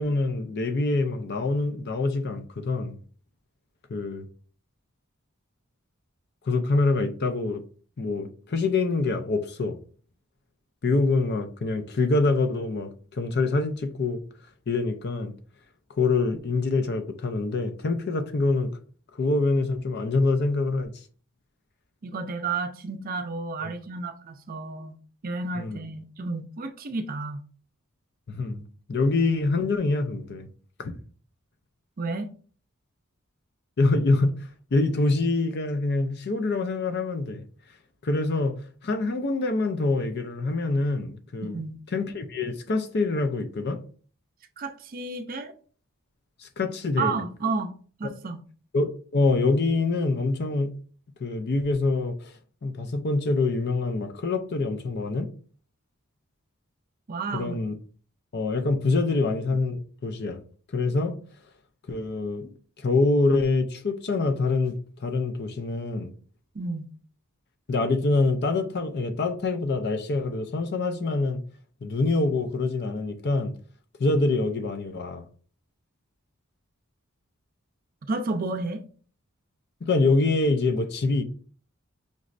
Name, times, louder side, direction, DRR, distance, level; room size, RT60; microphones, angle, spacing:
voice 1, 0.0-3.0 3.9-4.3 6.5-7.6 8.0-9.8 10.8-14.2 14.7-15.3 16.0-18.7 19.2-20.9 23.6-23.7 25.5-25.9 28.3-28.6 28.9-30.5 30.8-31.0 33.8-37.4 38.0-38.5 38.8-41.6 41.9-43.8 46.4-47.2 48.0-48.1 48.7-50.7 51.2-52.3 52.6-55.3 57.3-57.7 58.3-60.4 60.7-61.2 61.9-62.5 62.8-66.1 67.7-71.4 71.8-73.5 74.0-75.2 79.8-81.2, left 3 dB, 55° left, 0.5 m, -25 dB
voice 2, 22.0-25.0 25.2-27.4 32.0-32.3 41.4-41.8 44.6-45.5 47.0-47.7 48.0-48.4 57.1-57.6 66.5-66.9 78.1-78.8, right 3 dB, 45° right, 0.5 m, -31 dB
5.3 x 3.1 x 2.5 m
head